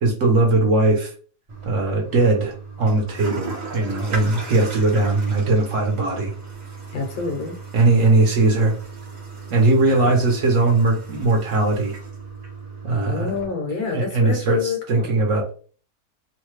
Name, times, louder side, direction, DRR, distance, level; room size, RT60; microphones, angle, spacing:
voice 1, 0.0-1.1 1.6-6.3 7.7-8.7 9.5-11.9 12.8-13.3 13.9-15.5, right 2 dB, 60° right, 1 dB, 1.0 m, -19 dB
Toilet flush, 1.5-13.5, right 4 dB, 40° right, 0.6 m, -36 dB
voice 2, 6.9-7.6 9.8-10.2 13.0-15.2, left 4 dB, 70° left, 2 dB, 1.3 m, -28 dB
3.1 x 2.1 x 3.1 m, 0.40 s
omnidirectional pair, 1.8 m